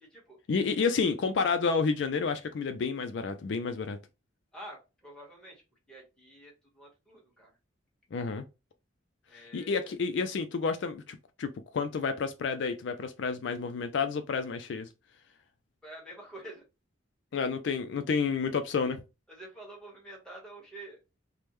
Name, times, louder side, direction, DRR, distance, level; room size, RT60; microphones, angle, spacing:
voice 1, 0.5-4.0 8.1-8.5 9.3-14.9 17.3-19.0, left 5 dB, 65° left, 0.4 m, -30 dB
voice 2, 4.5-5.6 5.9-7.5 9.3-9.9 15.8-16.6 19.3-21.0, right 1 dB, 5° left, 1.2 m, -48 dB
3.4 x 2.1 x 3.0 m
head